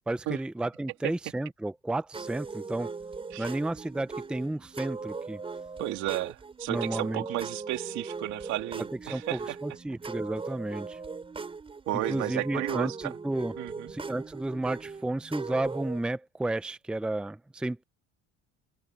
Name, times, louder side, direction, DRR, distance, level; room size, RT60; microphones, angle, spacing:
voice 1, 0.1-2.9 3.4-5.4 6.7-7.2 9.1-11.0 12.1-13.5 13.9-17.8, right 2 dB, 5° right, 0.6 m, -32 dB
sound 1, 2.1-16.0, right 4 dB, 20° right, 5.9 m, -39 dB
voice 2, 5.8-9.6 11.9-13.1 13.6-13.9, right 17 dB, 75° right, 2.6 m, -33 dB
open air
cardioid pair, 150°, 29 cm